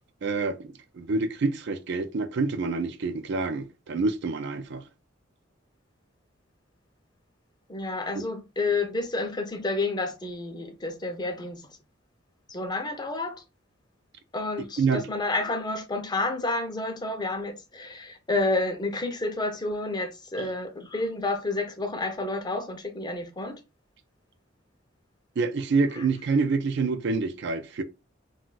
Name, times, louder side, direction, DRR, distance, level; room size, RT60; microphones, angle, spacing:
voice 1, 0.2-4.8 8.1-8.2 14.8-15.1 20.4-20.5 25.4-27.8, right 4 dB, 60° right, 0.4 m, -27 dB
voice 2, 7.7-11.6 12.5-13.4 14.3-23.6 26.0-26.1, left 2 dB, 20° left, 0.5 m, -30 dB
2.3 x 2.2 x 3.9 m
head